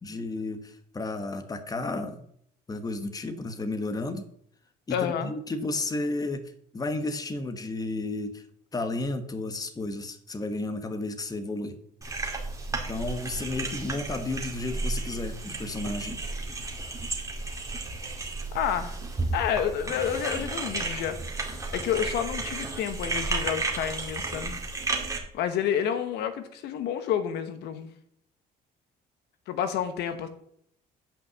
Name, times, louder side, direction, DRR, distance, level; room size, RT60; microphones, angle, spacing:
voice 1, 0.0-2.2 2.7-4.3 4.9-6.4 6.7-8.4 8.7-11.8 12.9-16.2, left 2 dB, 20° left, 8 dB, 1.2 m, -32 dB
voice 2, 4.9-5.3 18.5-19.0 19.3-21.2 21.5-24.6 25.3-27.9 29.5-30.3, left 9 dB, 80° left, 10 dB, 1.1 m, -29 dB
sound 1, 12.0-25.2, right 3 dB, 20° right, 2.0 m, -33 dB
9.1 x 5.5 x 6.9 m, 0.67 s
cardioid pair, 110°, 17 cm